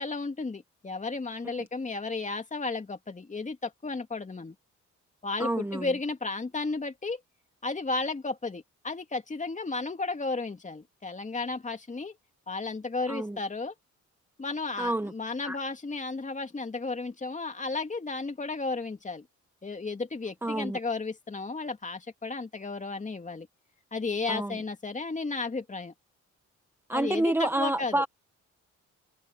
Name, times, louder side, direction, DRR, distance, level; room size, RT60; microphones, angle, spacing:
voice 1, 0.0-4.5 5.2-7.2 7.6-12.1 12.5-13.7 14.4-19.3 19.6-23.5 23.9-25.9 26.9-28.0, left 3 dB, 25° left, 2.6 m, -33 dB
voice 2, 5.4-5.9 13.1-13.4 14.8-15.1 15.4-15.6 20.4-20.8 24.3-24.5 26.9-28.1, right 1 dB, 5° right, 1.1 m, -28 dB
cardioid pair, 90°, 30 cm